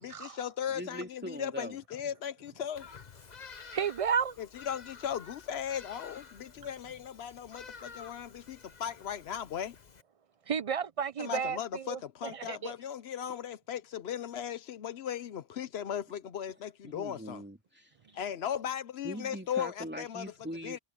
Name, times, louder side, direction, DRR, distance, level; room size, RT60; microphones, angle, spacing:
voice 1, 0.0-2.9 4.4-9.8 11.2-17.4 18.1-20.3 20.6-20.8, left 9 dB, 80° left, 1.0 m, -37 dB
voice 2, 0.7-1.8 16.8-18.2 19.0-20.8, equal, 10° right, 2.7 m, -42 dB
Bird vocalization bird call bird song, 2.7-10.0, left 5 dB, 45° left, 1.0 m, -51 dB
voice 3, 3.7-4.3 10.5-12.0 12.3-12.7, right 7 dB, 45° right, 0.5 m, -32 dB
omnidirectional pair, 1.1 m